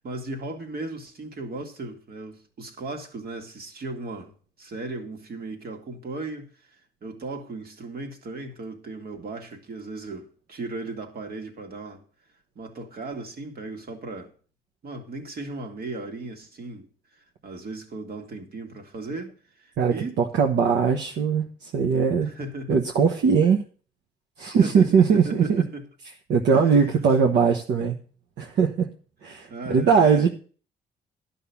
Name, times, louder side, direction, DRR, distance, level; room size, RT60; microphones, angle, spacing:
voice 1, 0.0-6.5 7.0-12.0 12.6-14.3 14.8-16.9 17.4-20.2 22.2-22.8 24.6-25.8 26.5-27.0 29.5-30.3, right 2 dB, 60° right, 2.3 m, -36 dB
voice 2, 19.8-22.3 22.7-23.6 24.4-25.6 26.3-28.0 28.4-28.9 29.2-30.3, right 6 dB, 80° right, 1.2 m, -20 dB
11.0 x 5.6 x 7.1 m
supercardioid pair, 60°, 18 cm